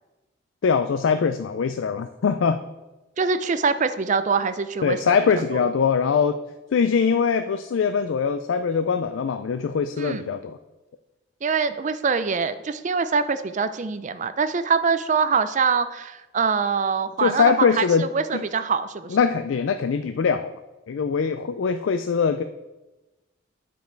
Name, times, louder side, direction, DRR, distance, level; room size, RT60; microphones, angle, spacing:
voice 1, 0.6-2.6 4.8-6.4 6.7-10.6 17.2-18.1 18.3-18.4 19.1-20.5 20.9-22.4, left 6 dB, 90° left, 10 dB, 0.4 m, -22 dB
voice 2, 3.2-5.1 5.5-5.6 10.0-10.2 11.4-19.2, right 5 dB, 40° right, 11 dB, 0.5 m, -24 dB
9.0 x 5.2 x 4.5 m, 1.1 s
head